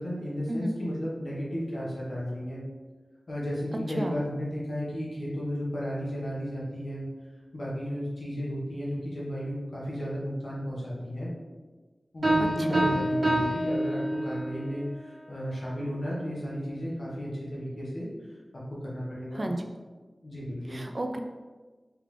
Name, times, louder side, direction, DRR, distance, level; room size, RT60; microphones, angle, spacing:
voice 1, 0.0-2.6 3.3-7.1 7.5-11.3 12.1-18.1 18.7-19.5 20.2-20.8, equal, 65° left, -6 dB, 1.3 m, -33 dB
sound 1, 12.2-14.6, right 1 dB, 70° right, 1.1 m, -27 dB
voice 2, 12.6-13.0 19.3-19.7 20.7-21.2, right 1 dB, 40° right, 4 dB, 0.4 m, -32 dB
3.6 x 3.5 x 3.2 m, 1.4 s
wide cardioid pair, 75°, 0 cm